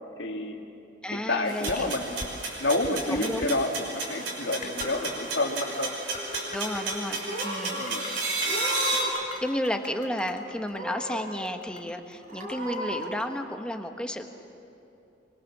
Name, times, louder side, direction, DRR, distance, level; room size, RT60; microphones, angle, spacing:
voice 1, 0.2-0.6 1.1-2.3 2.6-5.9 7.8-8.1, left 2 dB, 85° left, 2 dB, 2.3 m, -29 dB
voice 2, 1.0-2.0 3.1-3.7 6.5-7.8 9.4-14.2, equal, 5° left, 4 dB, 1.4 m, -32 dB
sound 1, 1.4-9.0, right 3 dB, 70° right, 6.0 m, -33 dB
sound 2, 1.7-1.8 2.2-2.3 2.8-3.5 4.2-4.3 4.6-4.9 5.2-5.6 6.1-7.2 7.5-10.4 10.7-13.2, left 3 dB, 45° left, 3.3 m, -41 dB
Purr / Meow, 4.5-5.3 5.6-6.2 6.9-7.0 7.2-7.9 8.4-9.3 9.5-10.3 10.7-11.3 11.7-11.8 12.3-13.0, equal, 50° right, 5.6 m, -36 dB
24.5 x 24.5 x 7.4 m, 2.7 s
head